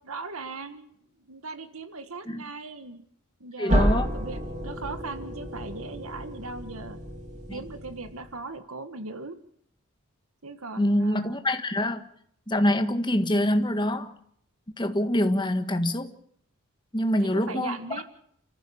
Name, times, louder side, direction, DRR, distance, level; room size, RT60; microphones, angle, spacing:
voice 1, 0.0-0.9 1.3-3.1 3.4-7.0 7.5-9.4 10.4-11.4 17.2-18.0, right 3 dB, 75° right, 9 dB, 1.7 m, -39 dB
voice 2, 3.6-4.1 7.5-7.6 10.8-12.0 12.5-14.1 14.8-16.1 16.9-17.8, left 1 dB, 20° left, 7 dB, 1.6 m, -25 dB
sound 1, 3.7-8.4, equal, 35° right, 3.8 m, -30 dB
29.5 x 14.5 x 7.1 m, 0.68 s
head